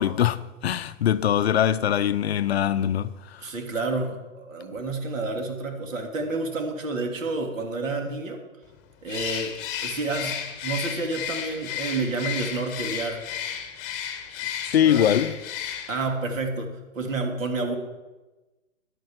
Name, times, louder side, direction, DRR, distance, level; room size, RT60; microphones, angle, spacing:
voice 1, 0.0-3.5 14.6-15.3, left 10 dB, 50° left, 0.6 m, -23 dB
voice 2, 3.4-8.4 9.0-9.6 9.8-13.2 14.8-15.3 15.9-17.7, right 3 dB, 70° right, 3.1 m, -29 dB
Bird, 9.1-16.1, left 9 dB, 20° left, 1.0 m, -33 dB
11.5 x 9.2 x 6.5 m
hypercardioid pair, 155°, 40 cm